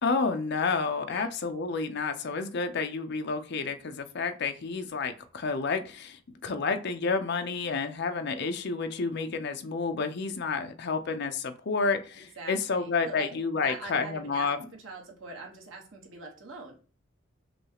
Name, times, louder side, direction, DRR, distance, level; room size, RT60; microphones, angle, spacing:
voice 1, 0.0-14.6, left 4 dB, 60° left, 0.6 m, -30 dB
voice 2, 12.4-14.5 14.8-16.7, right 3 dB, 80° right, 1.3 m, -43 dB
6.0 x 2.4 x 2.9 m
head